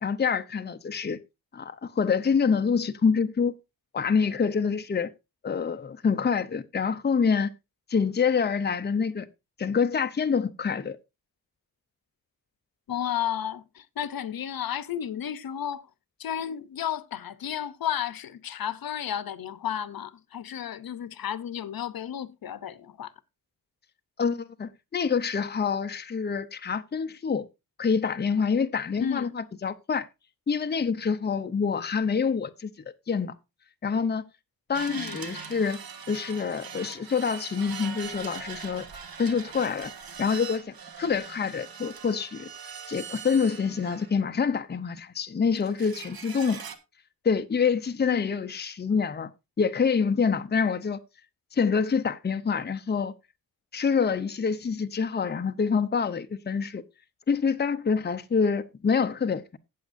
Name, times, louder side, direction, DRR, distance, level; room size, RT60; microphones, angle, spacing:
voice 1, 0.0-1.2 1.5-3.6 3.9-5.1 5.4-7.5 7.9-9.3 9.6-11.0 24.2-27.5 27.8-30.1 30.5-32.7 33.1-33.3 33.8-34.2 34.7-35.8 36.1-38.9 39.2-39.9 40.2-42.5 42.9-46.6 47.2-49.3 49.6-51.0 51.5-53.1 53.7-56.8 57.3-59.6, left 5 dB, 30° left, 0.6 m, -26 dB
voice 2, 12.9-15.9 16.2-23.1 29.0-29.4 34.9-35.2 48.0-48.4, left 9 dB, 80° left, 0.7 m, -33 dB
sound 1, 34.7-44.3 45.6-46.8, right 6 dB, 90° right, 1.3 m, -41 dB
14.5 x 8.3 x 2.6 m
wide cardioid pair, 135°, 35 cm